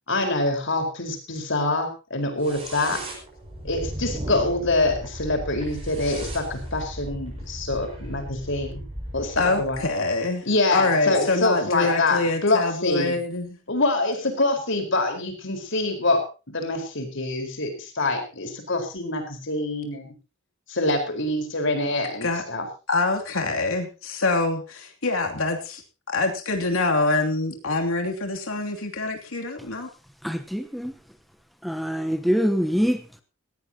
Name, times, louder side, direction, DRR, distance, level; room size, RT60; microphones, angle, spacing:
voice 1, 0.1-3.0 3.6-8.8 9.1-9.8 10.5-13.2 13.7-20.1 20.7-22.7, left 2 dB, 60° left, 4.6 m, -25 dB
sound 1, 2.4-9.9, right 1 dB, 30° right, 6.3 m, -36 dB
voice 2, 9.4-10.5 10.7-13.6 22.2-22.4 22.9-25.8 26.1-29.9, left 3 dB, 80° left, 2.9 m, -25 dB
voice 3, 30.2-30.9 31.6-33.0, equal, ahead, 1.0 m, -24 dB
18.0 x 16.5 x 2.9 m
head